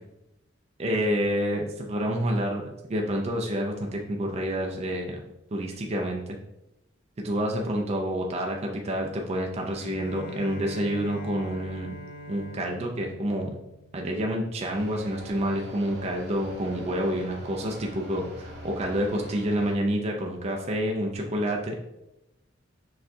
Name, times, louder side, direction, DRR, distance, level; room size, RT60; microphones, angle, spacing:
voice 1, 0.8-5.2 5.5-6.2 7.2-11.9 12.3-13.5 13.9-21.8, equal, 35° right, 0 dB, 0.4 m, -28 dB
Bowed string instrument, 9.8-14.5, left 1 dB, 50° left, 0.3 m, -44 dB
sound 1, 14.7-19.7, equal, 55° right, 1.0 m, -42 dB
6.1 x 2.3 x 2.7 m, 0.91 s
head